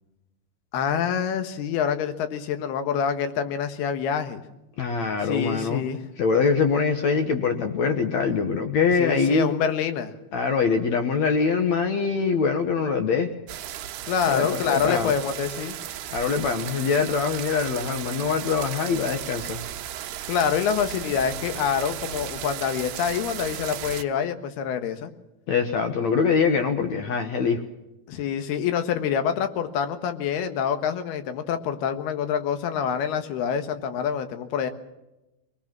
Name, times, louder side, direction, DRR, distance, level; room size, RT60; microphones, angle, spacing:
voice 1, 0.7-4.4 5.2-6.0 9.0-10.2 14.1-15.8 20.3-25.1 28.1-34.7, left 7 dB, 80° left, 8 dB, 3.4 m, -26 dB
voice 2, 4.8-5.8 6.2-9.5 10.3-13.3 14.3-15.1 16.1-19.6 25.5-27.6, left 5 dB, 60° left, 5 dB, 2.0 m, -23 dB
sound 1, 13.5-24.0, right 11 dB, 85° right, 3.1 m, -35 dB
23.0 x 20.0 x 6.0 m, 0.97 s
omnidirectional pair, 4.6 m